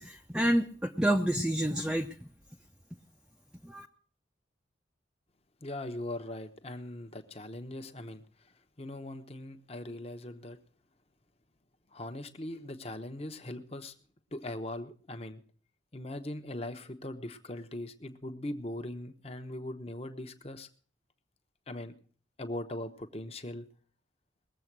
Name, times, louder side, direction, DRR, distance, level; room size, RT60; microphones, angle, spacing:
voice 1, 0.0-2.1 3.6-3.9, right 1 dB, 5° right, 3 dB, 0.6 m, -28 dB
voice 2, 5.6-8.2 8.8-10.6 11.9-13.9 14.3-15.4 15.9-20.7 21.7-21.9 22.4-23.7, left 1 dB, 30° left, 8 dB, 1.0 m, -40 dB
20.5 x 7.7 x 6.1 m, 0.43 s
head